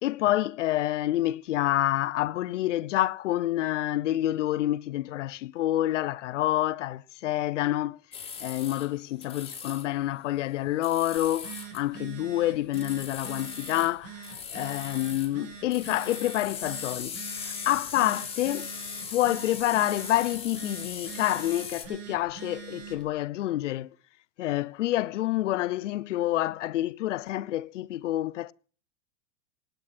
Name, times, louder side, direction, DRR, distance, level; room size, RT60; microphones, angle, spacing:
voice 1, 0.0-8.0 8.4-18.7 19.1-23.9 24.4-28.5, left 14 dB, 75° left, 0.8 m, -28 dB
sound 1, 8.1-8.9 9.2-9.9 10.8-11.8 12.7-13.9 14.2-15.3 15.7-21.9, left 6 dB, 15° left, 3.6 m, -39 dB
Telephone, 11.2-23.1, right 7 dB, 40° right, 4.1 m, -44 dB
27.5 x 9.2 x 4.4 m
hypercardioid pair, 125°, 36 cm